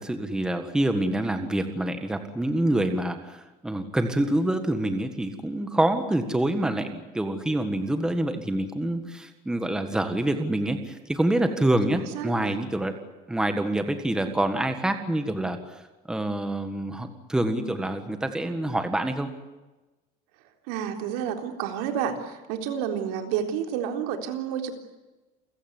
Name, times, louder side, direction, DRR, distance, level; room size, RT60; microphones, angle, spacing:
voice 1, 0.0-12.9 13.3-15.8 16.1-19.3, right 1 dB, 5° right, 7 dB, 1.7 m, -26 dB
voice 2, 11.9-12.6 20.7-24.7, right 8 dB, 85° right, 5 dB, 3.8 m, -30 dB
29.0 x 16.5 x 9.8 m, 1.1 s
cardioid pair, 170°, 18 cm